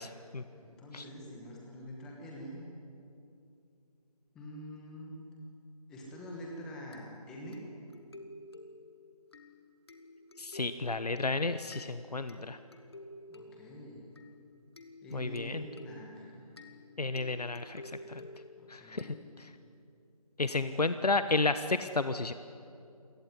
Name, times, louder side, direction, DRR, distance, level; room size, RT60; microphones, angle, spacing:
voice 1, 0.0-0.4 0.9-1.1 10.4-12.6 15.1-15.6 17.0-18.3 18.7-19.5 20.4-22.3, left 3 dB, 80° left, 11 dB, 1.2 m, -32 dB
voice 2, 0.5-2.7 4.3-5.2 5.9-7.6 13.3-14.1 15.0-16.4 18.6-19.2 20.5-20.7, equal, 5° left, -1 dB, 1.2 m, -46 dB
sound 1, 6.9-19.7, left 1 dB, 40° left, 1.8 m, -52 dB
27.5 x 17.5 x 9.9 m, 2.6 s
figure-of-eight pair, 170°, 20 cm